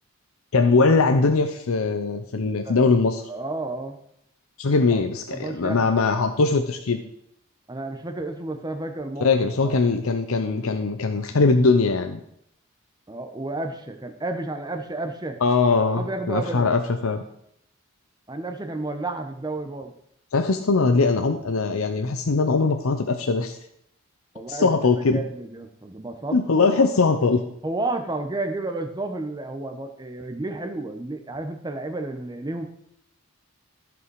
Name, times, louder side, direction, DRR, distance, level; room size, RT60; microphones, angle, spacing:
voice 1, 0.5-3.2 4.6-7.0 9.2-12.2 15.4-17.2 20.3-23.6 24.5-25.2 26.3-27.4, left 4 dB, 75° left, 6 dB, 0.6 m, -21 dB
voice 2, 2.4-2.9 3.3-4.0 4.9-5.0 5.3-5.9 7.7-9.3 9.6-9.9 13.1-15.4 16.0-16.7 18.3-19.9 24.3-24.7 25.1-26.7 27.6-32.7, right 2 dB, 20° right, 6 dB, 0.9 m, -31 dB
14.5 x 5.3 x 4.8 m, 0.74 s
head